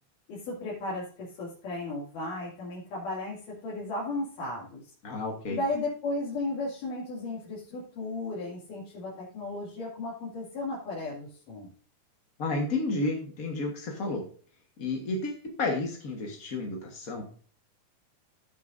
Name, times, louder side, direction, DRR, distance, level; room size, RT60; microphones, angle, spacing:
voice 1, 0.3-4.9 5.5-11.7, left 2 dB, 85° left, -7 dB, 4.1 m, -35 dB
voice 2, 5.0-5.6 12.4-14.2 14.8-17.2, left 2 dB, 45° left, 0 dB, 1.2 m, -31 dB
15.5 x 6.9 x 2.6 m, 0.42 s
omnidirectional pair, 3.6 m